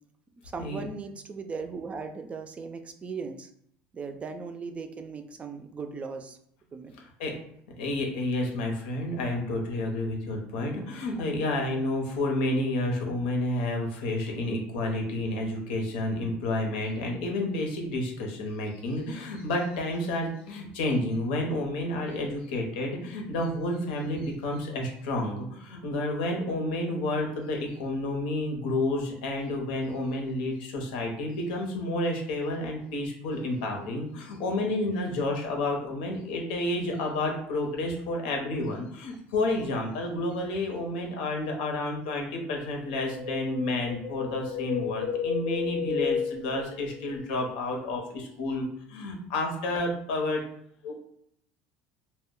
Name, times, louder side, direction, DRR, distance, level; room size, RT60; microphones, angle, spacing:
voice 1, 0.5-3.5 3.9-6.4 6.7-6.9, right 5 dB, 30° right, 6 dB, 0.4 m, -38 dB
voice 2, 7.8-50.4 50.8-50.9, left 1 dB, 90° left, 1 dB, 0.7 m, -30 dB
Wind, 42.9-47.2 47.5-47.6, left 6 dB, 35° left, 0.5 m, -32 dB
2.2 x 2.1 x 3.6 m, 0.68 s
supercardioid pair, 105°, 5 cm